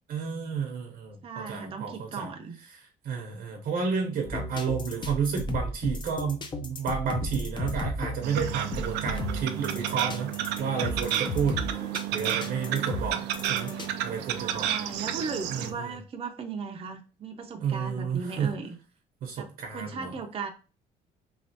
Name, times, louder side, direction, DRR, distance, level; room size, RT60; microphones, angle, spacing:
voice 1, 0.1-2.3 3.0-10.3 10.6-11.6 12.1-13.2 13.5-13.7 14.0-14.7 15.5-15.9 17.6-18.5 19.2-20.1, right 6 dB, 70° right, 1 dB, 0.8 m, -31 dB
voice 2, 1.2-2.6 4.0-4.5 11.5-11.6 14.3-18.7 19.4-19.5 19.7-20.5, right 5 dB, 35° right, 4 dB, 0.6 m, -37 dB
sound 1, 4.2-13.9, left 2 dB, 25° left, 0.5 m, -35 dB
sound 2, 8.2-15.7, right 11 dB, 90° right, 0.4 m, -31 dB
3.2 x 2.4 x 2.7 m, 0.35 s
cardioid pair, 110°, 17 cm